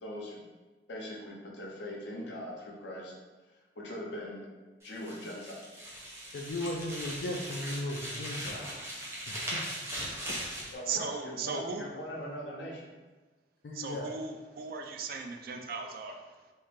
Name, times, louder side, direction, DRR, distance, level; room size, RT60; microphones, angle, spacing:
voice 1, 0.0-0.4 0.9-3.1 3.8-4.5 4.8-5.6 10.7-12.9, equal, 80° left, -3 dB, 0.9 m, -41 dB
sound 1, 4.8-10.7, equal, 15° right, 0.7 m, -39 dB
voice 2, 6.3-8.8 9.3-9.6 10.3-10.4 13.6-14.1, left 1 dB, 60° left, -1 dB, 0.4 m, -37 dB
voice 3, 10.9-11.9 13.7-16.5, right 5 dB, 55° right, 4 dB, 0.4 m, -37 dB
3.2 x 2.7 x 3.6 m, 1.2 s
head